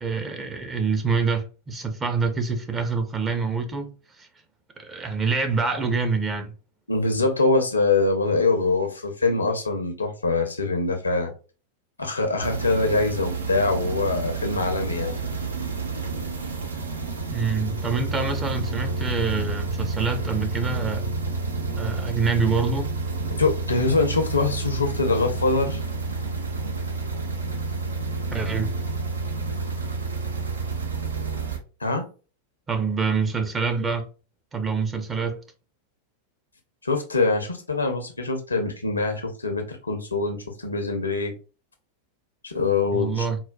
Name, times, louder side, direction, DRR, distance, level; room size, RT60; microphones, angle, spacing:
voice 1, 0.0-3.9 4.2-4.3 4.8-6.5 17.3-21.1 21.8-22.9 28.3-28.7 32.7-34.1 34.5-35.4 42.9-43.4, right 4 dB, 20° right, 0.6 m, -26 dB
voice 2, 6.9-11.3 12.0-15.2 23.4-25.8 31.8-32.0 36.8-41.3 42.4-43.3, left 3 dB, 80° left, 0.6 m, -24 dB
sound 1, 12.4-31.6, right 3 dB, 75° right, 0.5 m, -29 dB
3.9 x 2.2 x 2.2 m
figure-of-eight pair, 90°, 0 cm